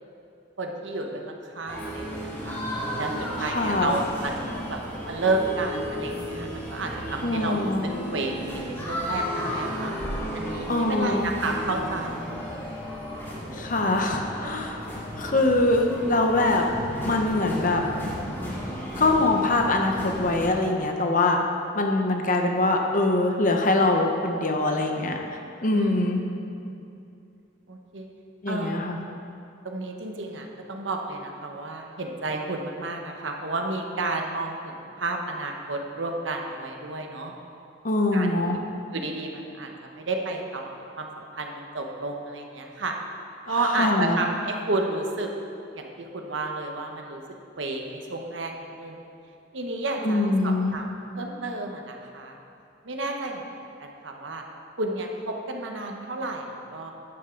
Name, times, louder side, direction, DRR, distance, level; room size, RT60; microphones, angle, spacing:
voice 1, 0.6-2.6 3.0-4.8 5.0-7.6 8.1-9.9 10.3-13.0 25.7-26.0 27.7-28.1 28.5-28.8 29.6-37.3 38.1-38.3 38.9-42.9 43.4-45.3 45.7-47.2 47.6-49.0 49.5-50.9 51.2-52.4 52.8-53.4 53.8-54.4 54.8-56.9, right 2 dB, 80° right, 2 dB, 1.1 m, -31 dB
sound 1, 1.7-20.5, equal, 10° left, 2.2 m, -33 dB
voice 2, 3.5-4.0 7.2-7.8 10.7-11.3 13.6-14.8 15.2-16.6 17.0-17.8 19.0-21.4 21.7-25.2 25.6-26.2 28.4-29.0 37.8-38.5 43.7-44.2 50.0-50.7, left 2 dB, 45° left, 2 dB, 1.0 m, -23 dB
11.5 x 10.0 x 3.9 m, 2.6 s
head